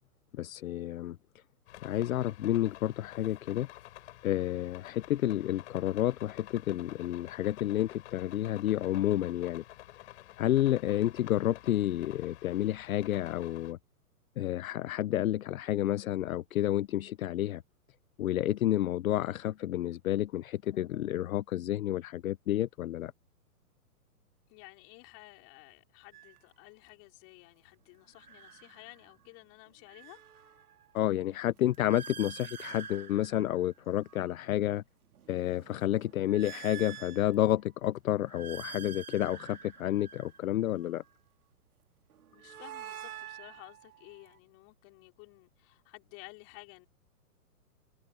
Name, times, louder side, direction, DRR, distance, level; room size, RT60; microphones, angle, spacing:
voice 1, 0.3-1.2 1.8-3.7 4.2-9.6 10.4-13.8 14.4-17.6 18.2-23.1 30.9-34.8 35.3-41.0, left 13 dB, 65° left, 0.8 m, -30 dB
sound 1, 1.7-13.7, left 15 dB, 50° left, 7.1 m, -51 dB
voice 2, 24.5-30.2 42.3-46.9, left 28 dB, 30° left, 5.1 m, -53 dB
sound 2, 26.1-26.4 28.1-29.3 29.7-34.5 35.0-37.7 38.1-41.1 42.1-44.4, right 8 dB, 75° right, 2.2 m, -48 dB
hypercardioid pair, 145°, 45 cm